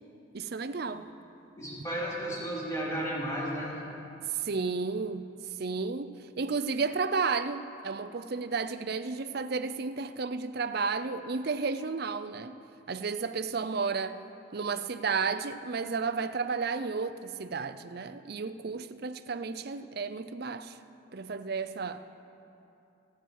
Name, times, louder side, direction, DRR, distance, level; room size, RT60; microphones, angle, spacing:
voice 1, 0.3-1.1 4.4-5.3 5.6-12.6 12.9-14.2 14.5-20.7 21.1-22.0, right 4 dB, 50° right, 11 dB, 0.5 m, -32 dB
voice 2, 1.6-3.8, right 1 dB, 15° left, -6 dB, 2.8 m, -33 dB
25.5 x 9.2 x 4.7 m, 2.8 s
head